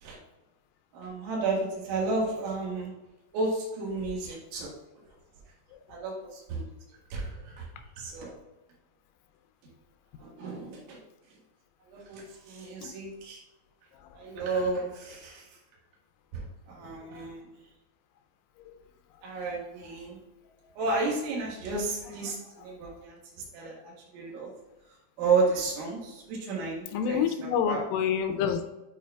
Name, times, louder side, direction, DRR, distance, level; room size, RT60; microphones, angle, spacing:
voice 1, 0.9-2.9 3.3-4.7 5.9-6.7 7.1-7.7 8.0-8.4 10.2-11.0 11.9-13.4 14.1-15.5 16.3-16.4 16.7-17.4 19.2-20.2 20.8-24.5 25.2-27.2 27.7-27.8, right 3 dB, 75° right, -3 dB, 3.9 m, -32 dB
voice 2, 26.9-28.7, left 7 dB, 85° left, 6 dB, 3.2 m, -28 dB
10.5 x 4.6 x 2.3 m, 1.0 s
omnidirectional pair, 5.9 m